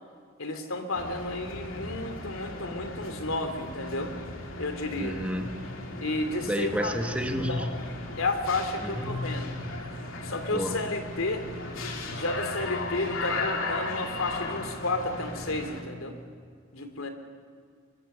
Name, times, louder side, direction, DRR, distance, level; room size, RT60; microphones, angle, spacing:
voice 1, 0.4-4.1 4.6-5.2 6.0-6.9 7.3-7.7 8.1-9.5 10.2-11.5 12.1-16.2 16.7-17.1, left 2 dB, 90° left, 7 dB, 2.9 m, -32 dB
sound 1, 0.9-15.8, left 2 dB, 70° left, 3.1 m, -37 dB
voice 2, 5.0-5.7 6.5-7.7 8.8-9.3 10.5-10.8, equal, 5° right, 4 dB, 1.8 m, -31 dB
23.5 x 23.5 x 6.9 m, 2.1 s
head